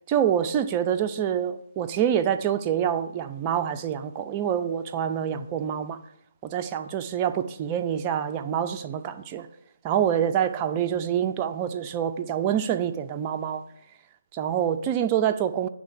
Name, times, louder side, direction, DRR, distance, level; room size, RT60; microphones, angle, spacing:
voice 1, 0.1-6.0 6.4-9.5 9.8-13.6 14.3-15.7, right 9 dB, 20° right, 8 dB, 0.3 m, -26 dB
8.7 x 3.3 x 5.0 m, 0.77 s
figure-of-eight pair, 150°, 0 cm